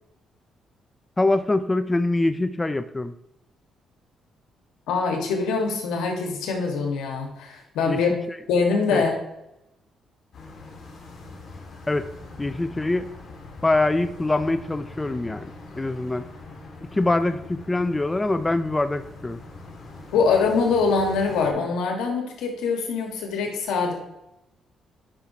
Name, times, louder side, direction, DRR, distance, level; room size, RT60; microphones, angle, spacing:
voice 1, 1.2-3.2 7.9-8.0 8.3-8.4 8.9-9.0 11.9-12.1 12.4-13.1 13.6-15.5 15.8-16.3 16.9-19.4, left 2 dB, 15° left, 11 dB, 0.4 m, -24 dB
voice 2, 4.9-8.1 8.5-9.1 20.1-23.9, left 4 dB, 90° left, 2 dB, 1.6 m, -23 dB
sound 1, 10.3-21.5, left 3 dB, 55° left, 2.1 m, -42 dB
9.7 x 5.7 x 2.9 m, 0.90 s
cardioid pair, 90°, 0 cm